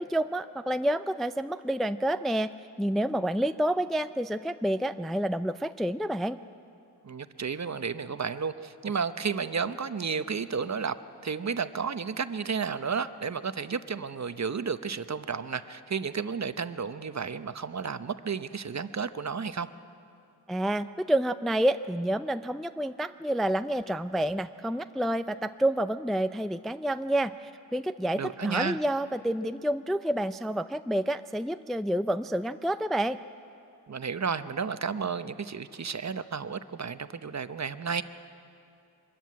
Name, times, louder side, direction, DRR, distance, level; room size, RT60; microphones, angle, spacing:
voice 1, 0.0-2.5 2.8-6.4 20.5-33.2, right 1 dB, ahead, 11 dB, 0.4 m, -29 dB
voice 2, 7.0-10.9 11.2-19.7 28.2-28.8 33.9-38.0, right 5 dB, 40° right, 12 dB, 0.8 m, -32 dB
23.5 x 13.5 x 9.5 m, 2.6 s
cardioid pair, 55°, 42 cm